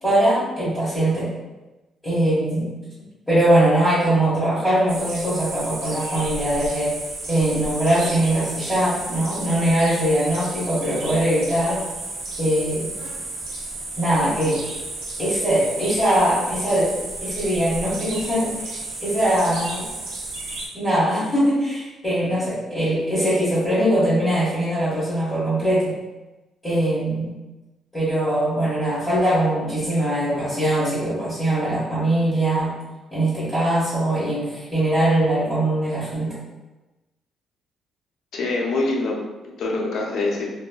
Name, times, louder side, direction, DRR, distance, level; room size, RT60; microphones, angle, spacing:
voice 1, 0.0-1.3 2.0-2.7 3.3-6.9 7.3-11.8 12.4-12.9 14.0-14.6 15.2-16.9 17.2-19.8 20.7-26.0 26.6-27.3 27.9-32.7 33.1-36.3, right 1 dB, 20° left, -12 dB, 1.3 m, -21 dB
sound 1, 4.9-20.7, right 2 dB, 80° right, 0.6 m, -33 dB
voice 2, 38.3-40.5, left 2 dB, 70° left, -1 dB, 0.6 m, -25 dB
3.0 x 2.3 x 2.2 m, 1.1 s
cardioid pair, 90°, 0 cm